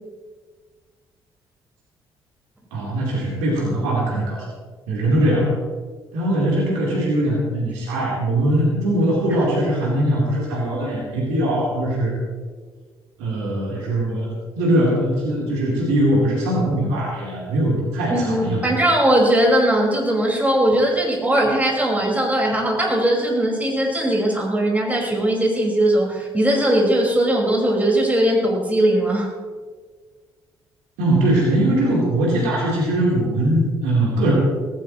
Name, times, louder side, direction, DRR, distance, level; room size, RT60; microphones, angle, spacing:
voice 1, 2.7-4.4 4.9-5.5 6.1-12.1 13.2-14.3 14.6-18.7 31.0-34.3, right 1 dB, 65° right, -4 dB, 3.9 m, -21 dB
voice 2, 18.1-29.3, right 1 dB, 10° right, -2 dB, 5.4 m, -19 dB
18.0 x 17.0 x 3.2 m, 1.5 s
figure-of-eight pair, 45°, 13 cm